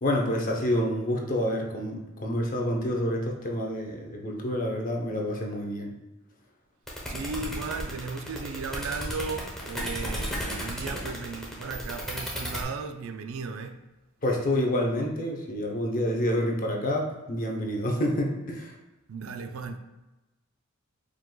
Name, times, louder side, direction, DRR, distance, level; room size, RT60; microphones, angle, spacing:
voice 1, 0.0-5.9 14.2-18.7, left 1 dB, 40° left, 0.7 m, -28 dB
sound 1, 6.9-12.6, equal, ahead, 0.9 m, -34 dB
voice 2, 7.1-13.8 19.1-19.8, right 4 dB, 80° right, 0.4 m, -36 dB
4.8 x 3.7 x 2.3 m
head